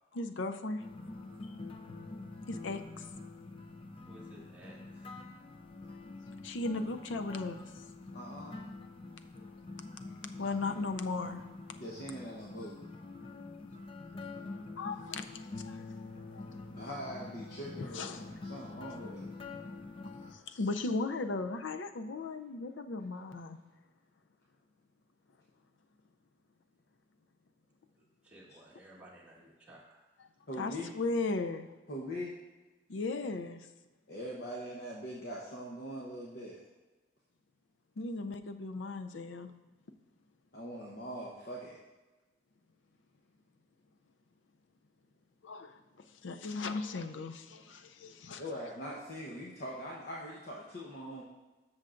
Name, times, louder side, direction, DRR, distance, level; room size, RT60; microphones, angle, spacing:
voice 1, 0.1-0.8 2.5-3.1 6.4-7.8 10.4-11.4 14.8-15.9 16.3-16.5 17.8-18.3 20.3-23.6 30.6-31.7 32.9-33.7 38.0-39.5 45.4-45.8 46.2-48.4, left 3 dB, 75° left, 7 dB, 0.5 m, -37 dB
sound 1, 0.8-20.3, left 3 dB, 30° left, 0.5 m, -46 dB
voice 2, 4.1-5.1 28.2-30.1, right 1 dB, 10° right, -6 dB, 1.5 m, -55 dB
voice 3, 8.1-8.5 10.6-10.8 11.7-12.7 16.7-19.3 30.5-30.9 31.9-32.3 34.1-36.6 40.5-41.8 48.4-51.2, equal, 55° left, -3 dB, 0.9 m, -42 dB
13.0 x 6.4 x 2.5 m, 1.2 s
head